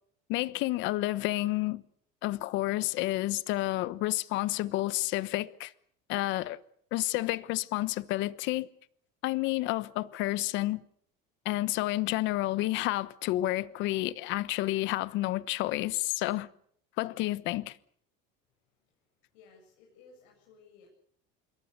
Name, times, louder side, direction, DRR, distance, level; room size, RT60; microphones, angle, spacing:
voice 1, 0.3-1.8 2.2-5.7 6.1-6.6 6.9-8.7 9.2-10.8 11.4-16.5 17.0-17.8, left 17 dB, 65° left, 1.1 m, -30 dB
voice 2, 19.3-20.9, left 4 dB, 90° left, 7.9 m, -58 dB
26.5 x 22.5 x 6.7 m
cardioid pair, 140°, 21 cm